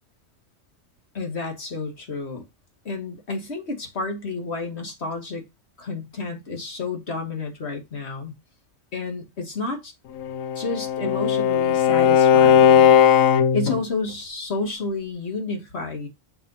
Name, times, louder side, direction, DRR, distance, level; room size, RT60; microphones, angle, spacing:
voice 1, 1.1-2.4 2.9-5.4 5.8-8.3 8.9-9.9 10.6-13.0 13.5-16.1, left 3 dB, 55° left, 2.2 m, -30 dB
Bowed string instrument, 10.2-13.8, left 8 dB, 90° left, 1.1 m, -17 dB
6.9 x 4.2 x 5.6 m
omnidirectional pair, 1.3 m